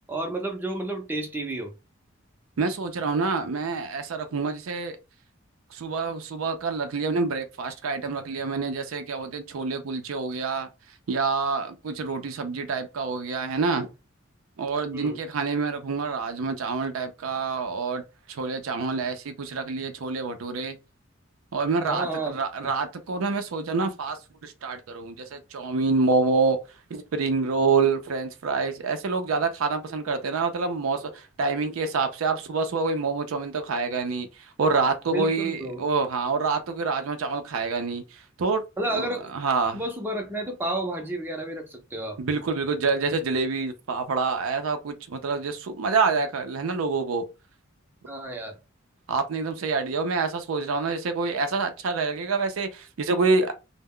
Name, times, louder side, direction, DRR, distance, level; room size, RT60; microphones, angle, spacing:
voice 1, 0.1-1.7 14.9-15.2 21.8-22.3 22.6-22.7 35.1-35.8 38.8-39.3 39.7-42.2 48.1-48.5, right 1 dB, 10° right, 0.5 m, -31 dB
voice 2, 2.6-5.0 5.7-10.7 11.1-13.9 14.6-18.0 18.3-20.8 21.5-26.6 26.9-38.6 38.9-39.8 42.2-47.2 49.1-53.5, right 4 dB, 80° right, 0.5 m, -27 dB
2.2 x 2.0 x 3.5 m
head